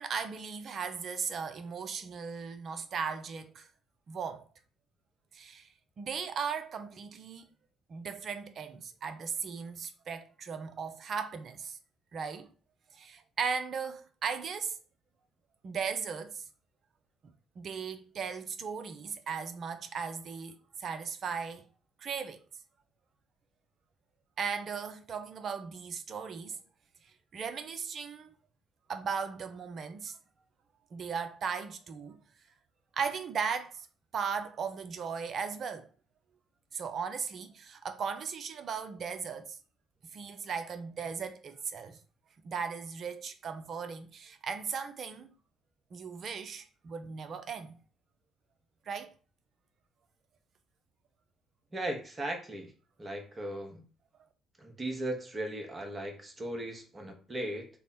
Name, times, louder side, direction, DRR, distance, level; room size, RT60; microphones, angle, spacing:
voice 1, 0.0-3.7 4.1-4.4 5.3-5.7 6.0-7.4 7.9-11.8 12.1-12.5 12.9-14.8 15.6-16.5 17.6-21.7 22.0-22.4 24.4-26.6 27.3-28.3 28.9-30.2 30.9-32.2 32.9-33.9 34.1-35.9 36.7-39.6 40.1-42.0 42.4-45.3 45.9-47.8 48.9-49.1, right 6 dB, 50° right, 0.5 m, -37 dB
voice 2, 51.7-52.7 53.0-53.8 54.6-57.7, right 1 dB, 30° right, 1.0 m, -37 dB
3.3 x 2.1 x 4.2 m
hypercardioid pair, 50°, 0 cm